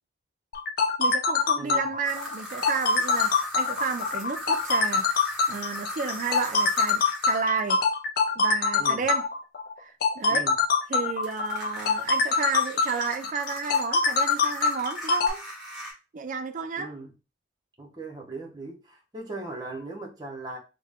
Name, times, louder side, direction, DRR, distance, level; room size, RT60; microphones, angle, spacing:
sound 1, 0.5-15.3, left 4 dB, 50° left, 0.4 m, -24 dB
voice 1, 1.0-7.8 8.4-9.3 9.8-10.5 10.9-15.4 16.1-16.9, right 5 dB, 40° right, 0.3 m, -32 dB
voice 2, 1.6-1.9 8.8-9.0 10.3-10.5 16.8-17.1 17.8-20.6, right 2 dB, 20° right, 0.7 m, -38 dB
sound 2, 2.1-7.5 11.2-15.9, equal, ahead, 1.1 m, -39 dB
3.3 x 2.1 x 3.5 m
head